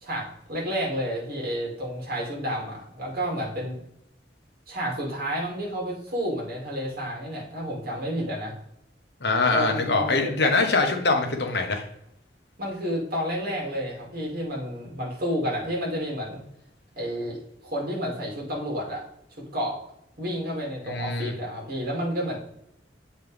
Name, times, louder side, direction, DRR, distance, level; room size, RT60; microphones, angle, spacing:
voice 1, 0.0-3.8 4.7-8.6 9.5-10.5 12.6-16.4 17.0-17.4 17.6-19.0 19.5-19.8 20.2-22.4, equal, 60° right, -3 dB, 2.7 m, -30 dB
voice 2, 9.2-11.8 20.9-21.3, left 3 dB, 70° left, 4 dB, 1.1 m, -23 dB
7.8 x 4.3 x 3.6 m, 0.76 s
head